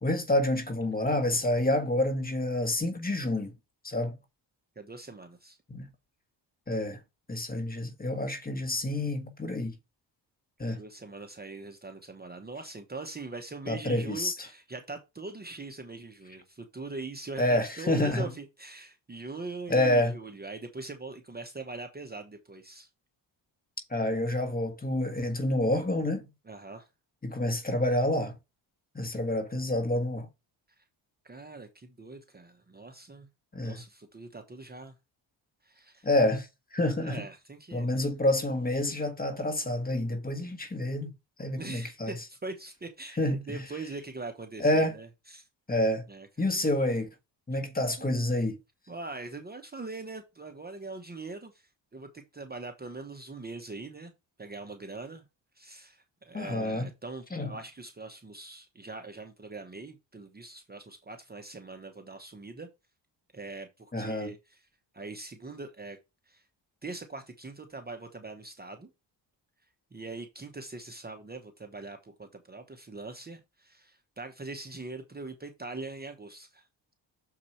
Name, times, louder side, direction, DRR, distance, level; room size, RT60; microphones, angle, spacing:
voice 1, 0.0-3.5 3.8-4.2 5.7-5.9 6.7-7.0 7.3-9.7 10.6-10.8 13.7-14.5 17.4-18.2 19.7-20.1 23.9-26.3 27.2-28.4 29.0-30.3 33.5-33.8 36.0-37.2 37.7-42.2 43.2-43.6 44.6-44.9 45.7-46.0 46.4-47.1 47.5-48.6 56.3-56.9 57.3-57.5 63.9-64.3, left 1 dB, 20° left, 1.6 m, -28 dB
voice 2, 4.8-5.6 10.6-22.9 26.5-26.9 29.1-29.2 30.8-30.9 31.2-33.3 33.6-34.9 35.6-36.1 36.9-38.0 41.6-43.2 43.5-45.5 46.1-46.3 47.5-47.6 48.0-48.1 48.9-54.1 54.4-55.2 55.5-62.7 63.3-64.6 64.9-66.0 66.3-66.5 66.8-68.9 69.9-76.7, right 3 dB, 20° right, 1.0 m, -42 dB
6.7 x 4.8 x 4.3 m
cardioid pair, 110°, 45 cm